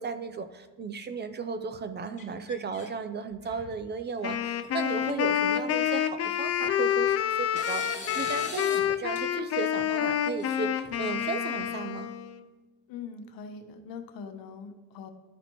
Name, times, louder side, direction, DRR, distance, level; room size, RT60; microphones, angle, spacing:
voice 1, 0.0-12.1, right 5 dB, 30° right, 10 dB, 0.4 m, -35 dB
sound 1, 2.2-2.9 3.3-3.8 4.6-4.7 5.0-5.1 6.5-7.0 7.6-8.8 9.2-9.3 10.4-11.2, left 3 dB, 20° left, 1.4 m, -42 dB
Wind instrument woodwind instrument, 4.2-12.4, left 10 dB, 45° left, 0.4 m, -28 dB
voice 2, 12.9-15.1, left 5 dB, 70° left, 7 dB, 0.9 m, -42 dB
11.5 x 4.1 x 3.0 m, 1.2 s
cardioid pair, 120°, 36 cm